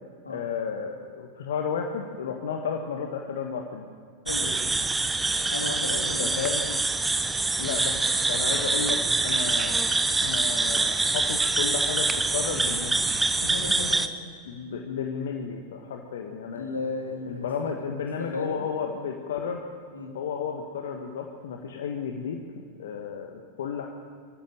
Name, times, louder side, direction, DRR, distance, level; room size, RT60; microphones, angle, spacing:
voice 1, 0.3-3.9 6.2-6.8 7.6-9.7 10.2-13.0 14.4-16.8 17.3-19.6 20.1-22.4 22.8-23.9, left 6 dB, 60° left, 3 dB, 1.7 m, -32 dB
voice 2, 4.2-4.6 5.5-6.6 8.8-8.9 13.4-14.1 14.5-14.6 16.5-17.9 18.3-18.6 19.9-20.1, left 2 dB, 80° left, 2 dB, 3.2 m, -35 dB
sound 1, 4.3-14.1, right 3 dB, 10° right, 1.1 m, -25 dB
23.5 x 15.0 x 7.6 m, 2.2 s
figure-of-eight pair, 90°, 0 cm